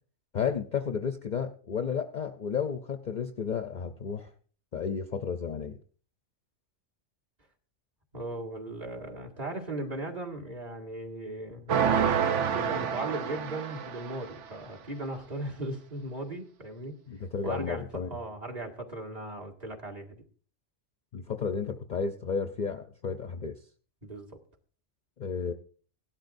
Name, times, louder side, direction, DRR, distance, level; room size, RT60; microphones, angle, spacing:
voice 1, 0.3-4.3 4.7-5.8 17.1-18.2 21.1-23.6 25.2-25.5, left 6 dB, 50° left, 7 dB, 0.6 m, -32 dB
voice 2, 8.1-11.8 12.5-17.0 17.4-20.2 24.0-24.3, right 2 dB, 35° right, 0 dB, 1.9 m, -37 dB
sound 1, 11.7-14.4, right 7 dB, 75° right, 1.0 m, -28 dB
17.5 x 12.0 x 2.6 m, 0.42 s
omnidirectional pair, 1.3 m